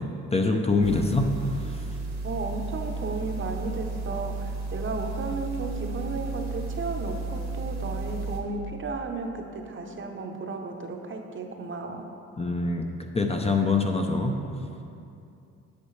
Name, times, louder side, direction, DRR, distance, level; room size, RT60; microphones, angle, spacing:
voice 1, 0.0-1.3 1.7-1.8 12.4-14.3, left 3 dB, 20° left, 3 dB, 0.5 m, -25 dB
sound 1, 0.8-8.4, right 3 dB, 65° right, 1.1 m, -33 dB
voice 2, 2.2-12.1, right 3 dB, 40° right, 3 dB, 0.8 m, -34 dB
8.3 x 7.5 x 3.2 m, 2.6 s
cardioid pair, 90°, 30 cm